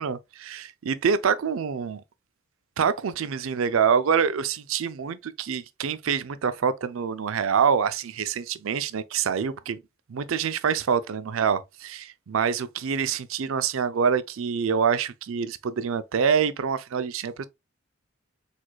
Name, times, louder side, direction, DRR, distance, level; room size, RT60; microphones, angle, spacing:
voice 1, 0.0-2.0 2.8-9.8 10.1-17.5, right 6 dB, 75° right, 0.4 m, -26 dB
4.6 x 4.2 x 2.2 m
head